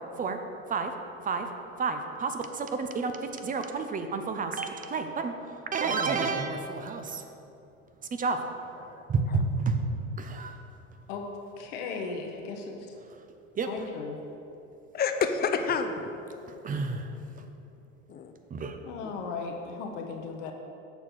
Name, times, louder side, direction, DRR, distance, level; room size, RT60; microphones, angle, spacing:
voice 1, 1.8-3.1 3.4-5.3 5.7-7.2 8.1-8.4 9.1-9.8 10.2-10.5 13.6-13.7 16.6-17.1 18.5-18.8, right 4 dB, 20° right, 6 dB, 0.6 m, -30 dB
voice 2, 8.8-9.4 14.9-16.5 18.1-18.3, left 5 dB, 25° left, 7 dB, 0.5 m, -30 dB
voice 3, 11.6-12.7 13.7-14.2 18.8-20.5, left 4 dB, 65° left, 2 dB, 0.9 m, -36 dB
6.8 x 4.3 x 5.9 m, 2.8 s
hypercardioid pair, 75°, 39 cm